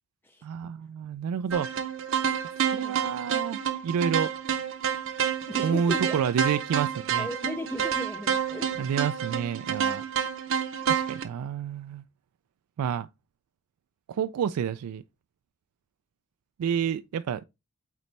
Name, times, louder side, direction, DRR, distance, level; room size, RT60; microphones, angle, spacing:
voice 1, 0.4-1.7 2.6-4.3 5.6-7.3 8.8-10.0 10.9-12.0 12.8-13.1 14.1-15.0 16.6-17.4, right 8 dB, 85° right, 0.3 m, -29 dB
sound 1, 1.5-11.2, right 8 dB, 60° right, 0.7 m, -29 dB
voice 2, 5.5-6.2 7.2-8.8, left 1 dB, 10° left, 0.4 m, -36 dB
8.3 x 4.1 x 3.2 m
head